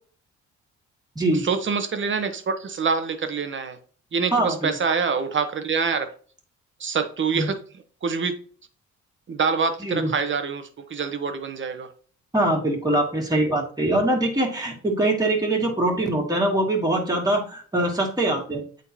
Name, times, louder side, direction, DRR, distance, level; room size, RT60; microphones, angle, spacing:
voice 1, 1.3-3.8 4.1-6.1 6.8-7.6 8.0-8.4 9.3-11.9, right 5 dB, 40° right, 8 dB, 1.1 m, -25 dB
voice 2, 4.3-4.7 7.3-7.5 9.8-10.1 12.3-18.7, right 1 dB, 15° right, -1 dB, 2.2 m, -23 dB
8.9 x 3.8 x 2.9 m, 0.43 s
cardioid pair, 90°, 30 cm